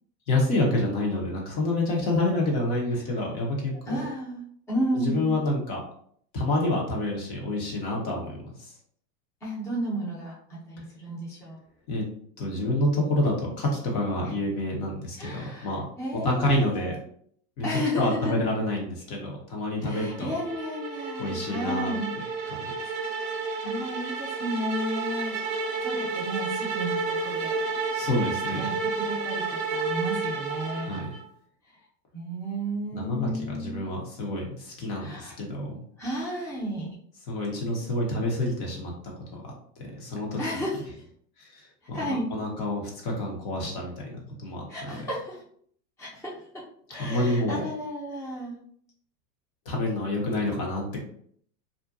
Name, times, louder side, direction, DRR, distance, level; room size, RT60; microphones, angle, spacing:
voice 1, 0.3-4.0 4.9-5.8 6.3-8.7 11.9-12.0 12.4-15.8 16.2-17.0 17.6-20.3 21.2-21.9 22.5-22.7 27.9-28.6 30.8-31.1 32.9-35.8 37.3-39.4 39.8-40.6 41.4-45.1 47.0-47.7 49.7-51.0, left 1 dB, 40° left, -1 dB, 0.9 m, -28 dB
voice 2, 3.9-4.4 4.7-5.5 9.4-11.6 14.2-14.4 15.2-17.0 17.6-18.3 19.8-22.1 22.5-23.1 23.6-25.4 25.8-27.6 28.5-31.1 32.1-33.8 35.0-35.4 36.0-36.9 40.4-40.9 41.9-42.3 44.7-45.4 46.0-46.3 46.9-48.6, equal, 5° left, -7 dB, 0.7 m, -33 dB
sound 1, 19.9-31.3, right 4 dB, 50° right, 0.6 m, -31 dB
2.5 x 2.2 x 2.6 m, 0.62 s
hypercardioid pair, 105°, 49 cm